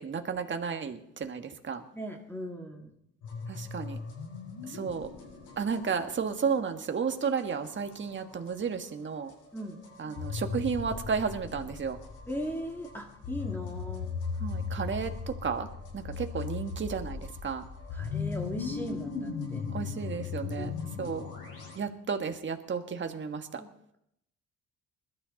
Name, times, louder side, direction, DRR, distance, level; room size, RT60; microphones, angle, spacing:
voice 1, 0.0-1.8 3.5-4.0 4.6-5.1 5.6-9.3 10.0-12.0 14.4-15.7 15.9-17.6 19.7-20.7 21.0-21.2 21.7-23.6, right 6 dB, 40° right, 6 dB, 1.6 m, -33 dB
voice 2, 1.9-2.9 9.5-9.8 12.3-14.1 17.9-19.7 20.4-21.1 23.6-23.7, equal, 5° left, 1 dB, 2.4 m, -39 dB
sound 1, 3.2-8.7 9.0-21.8, left 5 dB, 85° left, 7.6 m, -38 dB
21.0 x 12.5 x 4.1 m, 0.75 s
cardioid pair, 90°, 30 cm